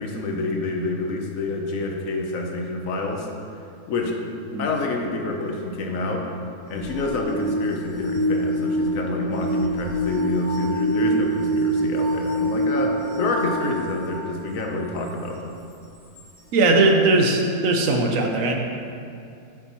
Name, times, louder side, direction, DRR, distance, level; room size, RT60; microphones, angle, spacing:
voice 1, 0.0-3.3 3.9-4.2 4.6-6.3 6.7-15.6, left 2 dB, 65° left, 1 dB, 1.1 m, -27 dB
sound 1, 6.7-14.3 15.0-15.1 16.2-16.3, right 1 dB, 30° left, 1.8 m, -25 dB
voice 2, 16.5-18.5, right 2 dB, 65° right, 2 dB, 1.0 m, -19 dB
8.0 x 7.6 x 3.0 m, 2.6 s
omnidirectional pair, 1.6 m